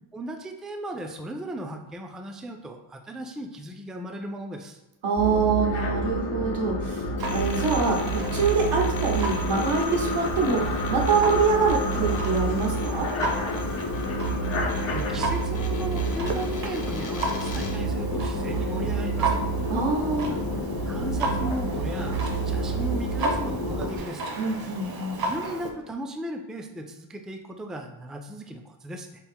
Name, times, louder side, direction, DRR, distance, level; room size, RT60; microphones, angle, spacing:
voice 1, 0.1-4.8 14.2-19.4 20.9-22.2 22.4-24.4 25.3-29.1, right 1 dB, ahead, 4 dB, 0.3 m, -36 dB
voice 2, 5.0-13.1 19.7-20.4 24.4-25.2, right 4 dB, 85° right, -1 dB, 0.9 m, -25 dB
sound 1, 5.2-24.0, right 1 dB, 75° left, 0.8 m, -28 dB
sound 2, 7.2-17.9, left 4 dB, 40° left, 0.6 m, -41 dB
Clock, 7.2-25.7, right 3 dB, 50° right, 0.7 m, -35 dB
4.4 x 2.0 x 3.5 m, 0.96 s
cardioid pair, 65°, 48 cm